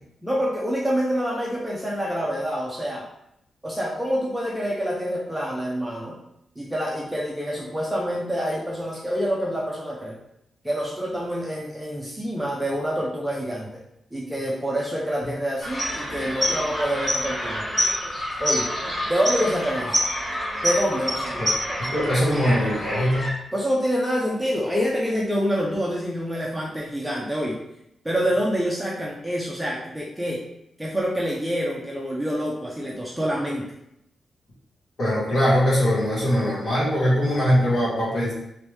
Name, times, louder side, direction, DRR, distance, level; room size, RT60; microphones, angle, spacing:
voice 1, 0.2-3.0 3.6-6.2 6.6-10.2 10.6-13.7 14.1-17.6 18.4-18.7 19.1-20.0 20.6-21.5 23.5-27.6 28.0-30.4 30.8-33.6, equal, 5° right, -3 dB, 0.4 m, -26 dB
sound 1, 15.6-23.3, equal, 15° left, 1.4 m, -27 dB
voice 2, 21.8-23.3 35.0-38.3, equal, 50° left, -7 dB, 1.5 m, -21 dB
3.3 x 3.0 x 3.1 m, 0.80 s
wide cardioid pair, 180°, 0 cm